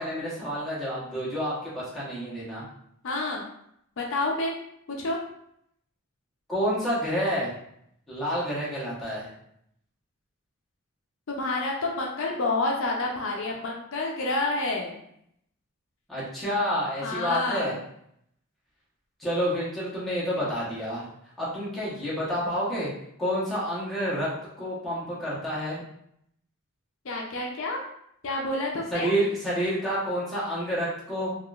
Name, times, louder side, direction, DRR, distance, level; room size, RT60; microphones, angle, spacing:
voice 1, 0.0-2.6 6.5-7.5 8.1-9.3 16.1-17.8 19.2-21.1 21.4-22.9 23.2-24.3 24.6-25.8 28.9-31.4, equal, ahead, -9 dB, 1.0 m, -29 dB
voice 2, 3.0-3.4 4.0-4.5 5.0-5.2 11.3-15.0 17.0-17.7 27.0-27.8 28.2-29.2, left 2 dB, 65° left, -1 dB, 0.5 m, -29 dB
3.6 x 2.4 x 2.4 m, 0.72 s
head